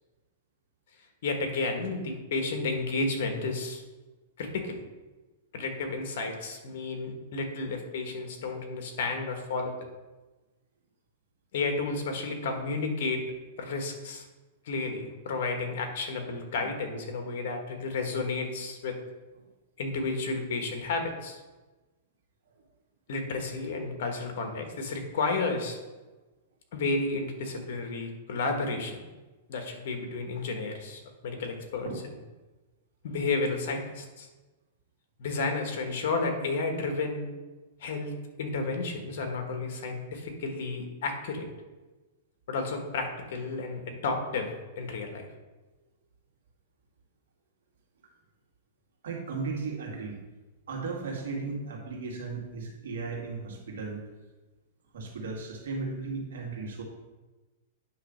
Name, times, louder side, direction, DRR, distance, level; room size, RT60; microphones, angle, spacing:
voice 1, 1.2-3.8 4.4-4.8 5.5-9.7 11.5-13.2 13.6-14.2 14.6-19.0 19.8-21.4 23.1-25.8 26.7-29.1 29.5-31.9 33.0-34.3 35.2-37.3 37.8-41.5 42.5-45.3, left 3 dB, 60° left, 4 dB, 1.5 m, -32 dB
voice 2, 49.0-50.2 50.7-54.0 54.9-56.8, right 4 dB, 85° right, -1 dB, 2.3 m, -36 dB
9.6 x 3.2 x 6.4 m, 1.2 s
supercardioid pair, 160°, 0 cm